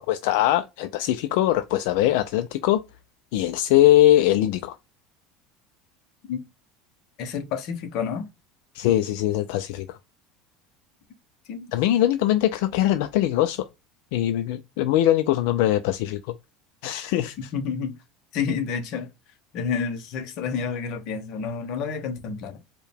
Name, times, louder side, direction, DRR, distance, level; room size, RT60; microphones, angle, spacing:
voice 1, 0.1-2.8 3.3-4.8 8.7-10.0 11.7-13.6 14.1-16.2 16.8-17.5, left 13 dB, 60° left, 0.3 m, -21 dB
voice 2, 7.2-8.3 11.5-11.7 17.5-18.0 18.3-19.1 19.5-22.6, left 6 dB, 40° left, 0.8 m, -29 dB
4.6 x 2.2 x 3.4 m
cardioid pair, 180°, 0 cm